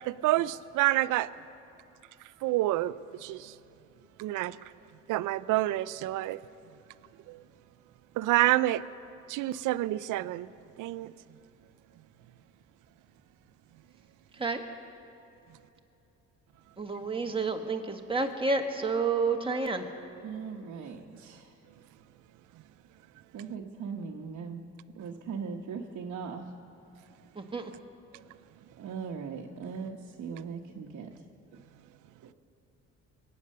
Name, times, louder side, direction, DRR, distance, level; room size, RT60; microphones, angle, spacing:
voice 1, 0.0-1.3 2.4-3.6 4.2-4.7 5.1-6.4 7.3-7.4 8.2-8.8 9.3-10.5 10.8-11.1 28.1-28.2, right 16 dB, 90° right, 0.5 m, -28 dB
voice 2, 16.8-19.8 27.4-27.7, right 4 dB, 15° right, 1.6 m, -30 dB
voice 3, 20.2-21.5 23.3-24.6 24.9-26.5 28.8-31.2 32.2-32.3, right 6 dB, 65° right, 1.1 m, -39 dB
22.5 x 9.7 x 6.6 m
cardioid pair, 90°, 30 cm